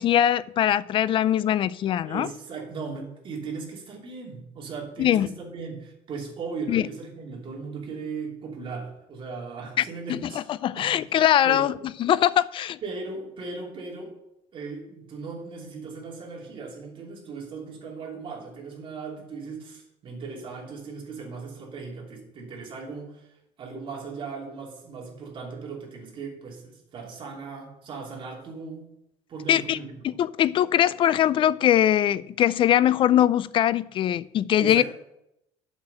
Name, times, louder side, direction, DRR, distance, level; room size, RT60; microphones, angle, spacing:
voice 1, 0.0-2.3 5.0-5.3 6.7-6.8 10.1-10.2 10.6-11.7 12.0-12.8 29.5-29.8 30.0-34.8, left 11 dB, 45° left, 0.4 m, -21 dB
voice 2, 2.0-10.4 10.7-11.0 11.4-11.6 12.8-14.2 14.5-23.3 23.6-28.9 29.3-30.2 34.6-34.8, right 4 dB, 45° right, 3.0 m, -37 dB
7.1 x 6.2 x 7.7 m
cardioid pair, 130°, 13 cm